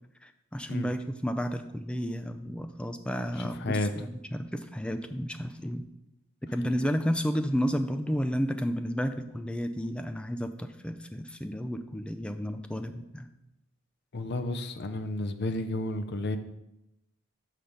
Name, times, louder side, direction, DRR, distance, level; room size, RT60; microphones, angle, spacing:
voice 1, 0.2-5.8 6.5-13.3, equal, 5° left, 8 dB, 0.4 m, -32 dB
voice 2, 3.4-3.9 14.1-16.4, left 2 dB, 55° left, 8 dB, 0.6 m, -32 dB
5.9 x 5.1 x 5.4 m, 0.89 s
head